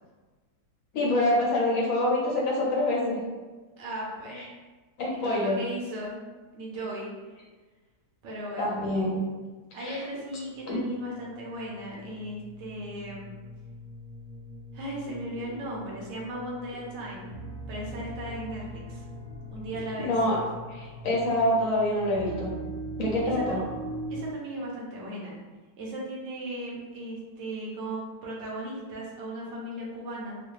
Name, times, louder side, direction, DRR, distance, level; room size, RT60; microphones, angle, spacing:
voice 1, 0.9-3.2 4.4-4.5 5.0-5.6 8.6-9.3 9.8-10.0 10.7-10.8 20.0-20.4 20.7-22.5 23.0-23.6, left 1 dB, 60° left, -4 dB, 1.1 m, -26 dB
voice 2, 3.8-4.5 5.1-6.2 6.5-7.1 8.2-8.8 9.7-13.3 14.7-17.3 17.7-19.0 19.5-20.1 23.3-23.7 24.1-25.4 25.8-30.4, right 1 dB, 55° right, -4 dB, 0.9 m, -37 dB
sound 1, 7.2-7.5 10.1-24.3, right 1 dB, 85° right, 1.5 m, -41 dB
3.1 x 2.2 x 3.1 m, 1.3 s
omnidirectional pair, 1.8 m